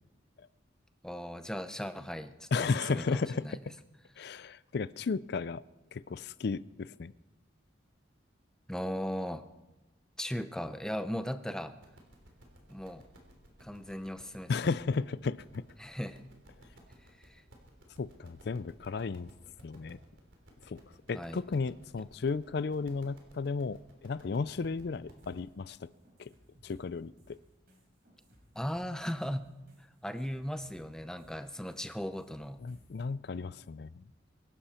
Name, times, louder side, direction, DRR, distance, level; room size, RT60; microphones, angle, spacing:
voice 1, 1.0-3.6 8.7-9.4 10.2-11.7 12.7-13.1 13.6-14.8 15.8-16.2 17.2-17.4 21.1-21.4 28.6-29.5 29.8-32.6, equal, 5° left, 9 dB, 0.6 m, -37 dB
voice 2, 2.5-3.6 4.2-5.6 5.9-7.1 14.5-15.6 18.0-19.3 19.6-20.0 20.7-20.8 21.1-25.9 26.2-26.3 26.6-27.4 32.6-34.0, left 4 dB, 55° left, 18 dB, 0.4 m, -34 dB
sound 1, 11.7-25.4, equal, 75° right, 3.4 m, -57 dB
sound 2, 25.2-33.0, equal, 50° right, 4.4 m, -62 dB
24.0 x 11.5 x 4.4 m, 1.1 s
head